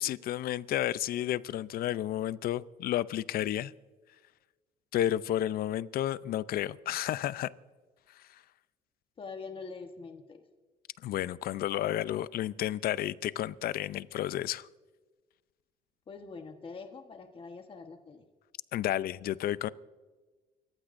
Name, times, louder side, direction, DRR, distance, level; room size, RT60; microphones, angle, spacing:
voice 1, 0.0-3.7 4.9-7.5 11.0-14.7 18.7-19.7, left 12 dB, 60° left, 18 dB, 0.5 m, -31 dB
voice 2, 9.2-10.4 16.1-18.2, left 4 dB, 30° left, 5 dB, 1.2 m, -44 dB
29.5 x 15.0 x 2.6 m, 1.3 s
cardioid pair, 110°, 17 cm